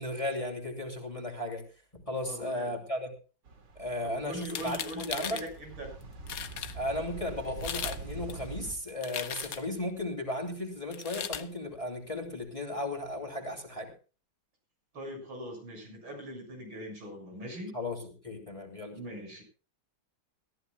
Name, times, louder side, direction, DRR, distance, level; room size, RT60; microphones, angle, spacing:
voice 1, 0.0-1.6 1.9-3.1 3.8-5.4 6.7-13.9 17.7-19.0, left 1 dB, 15° left, 3 dB, 2.9 m, -35 dB
voice 2, 2.2-2.7 4.0-6.0 14.9-17.8 18.9-19.4, equal, 80° right, 2 dB, 7.6 m, -41 dB
sound 1, 3.5-8.7, right 4 dB, 60° right, 2.9 m, -44 dB
sound 2, 4.4-5.5 6.0-6.1 6.3-6.7 7.5-8.0 8.3-9.8 10.9-11.5, left 8 dB, 55° left, 1.2 m, -37 dB
21.0 x 14.5 x 2.3 m, 0.35 s
omnidirectional pair, 2.1 m